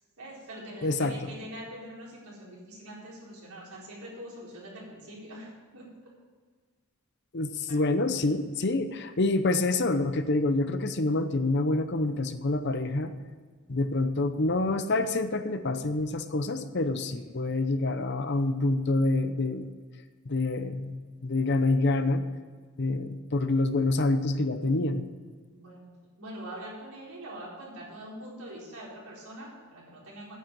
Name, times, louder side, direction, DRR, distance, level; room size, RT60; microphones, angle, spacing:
voice 1, 0.2-5.9 7.7-7.8 17.0-17.2 25.5-25.9 26.2-30.4, right 1 dB, 75° right, -4 dB, 4.1 m, -44 dB
voice 2, 0.8-1.1 7.3-13.1 13.7-19.7 20.3-21.0 21.2-22.3 22.8-25.1, left 2 dB, 50° left, 10 dB, 0.7 m, -27 dB
9.1 x 8.5 x 7.5 m, 1.5 s
head